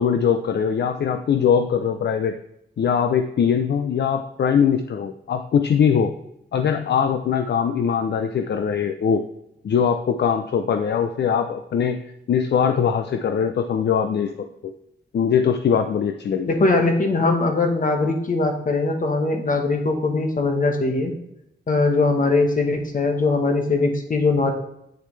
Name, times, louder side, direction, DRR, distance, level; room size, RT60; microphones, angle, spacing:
voice 1, 0.0-2.3 2.8-6.1 6.5-9.3 9.6-12.0 12.3-14.5 15.1-16.6, left 7 dB, 65° left, 7 dB, 0.5 m, -21 dB
voice 2, 16.4-21.1 21.7-24.5, left 3 dB, 45° left, 5 dB, 1.2 m, -21 dB
8.6 x 6.6 x 3.2 m, 0.80 s
wide cardioid pair, 135°, 19 cm